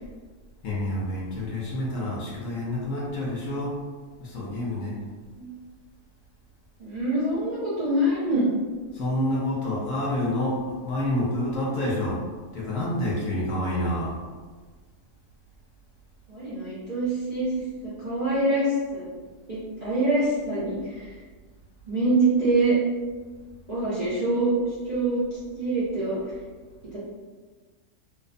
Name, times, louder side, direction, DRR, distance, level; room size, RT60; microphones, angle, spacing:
voice 1, 0.6-3.8 4.2-5.0 8.9-12.2 12.5-14.2, left 1 dB, 70° left, -4 dB, 0.8 m, -28 dB
voice 2, 6.8-8.5 16.3-19.1 19.5-21.1 21.9-22.8 23.7-24.5 24.8-25.2 25.5-26.2 26.9-27.0, right 2 dB, 80° right, -10 dB, 0.3 m, -25 dB
2.6 x 2.0 x 2.4 m, 1.4 s
omnidirectional pair, 1.6 m